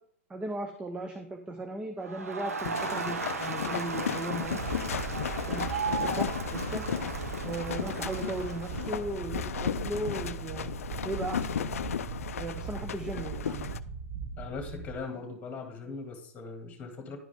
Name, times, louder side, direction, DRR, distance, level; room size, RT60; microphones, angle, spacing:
voice 1, 0.3-4.6 5.3-6.8 7.4-10.7 11.0-11.8 12.4-13.7, right 2 dB, 15° right, 5 dB, 0.7 m, -37 dB
Crowd, 2.0-9.1, right 5 dB, 85° right, 0.7 m, -36 dB
sound 1, 2.6-13.8, left 9 dB, 75° left, 0.4 m, -35 dB
sound 2, 4.4-15.0, right 6 dB, 45° right, 0.9 m, -40 dB
voice 2, 14.4-17.2, left 4 dB, 20° left, 4 dB, 2.0 m, -40 dB
11.0 x 4.8 x 3.6 m, 0.66 s
hypercardioid pair, 110°, 8 cm